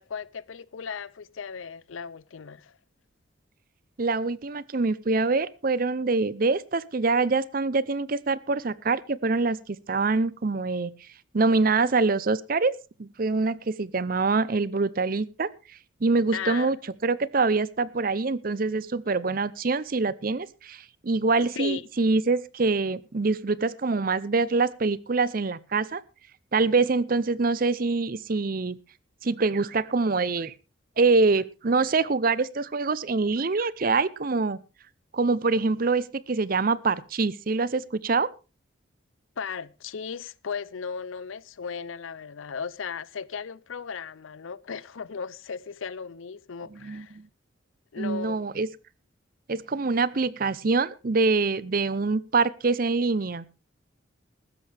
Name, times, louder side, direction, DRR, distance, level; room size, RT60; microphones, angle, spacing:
voice 1, 0.0-2.7 16.3-16.7 21.5-21.8 39.4-47.2 47.9-48.4, left 6 dB, 85° left, 0.6 m, -36 dB
voice 2, 4.0-10.9 11.3-12.7 13.0-15.5 16.0-16.8 17.0-26.0 26.5-28.8 29.2-30.5 31.0-34.6 35.1-38.3 46.8-47.0 48.0-48.7 49.5-53.4, right 3 dB, 45° right, 0.6 m, -25 dB
15.5 x 13.0 x 3.4 m
head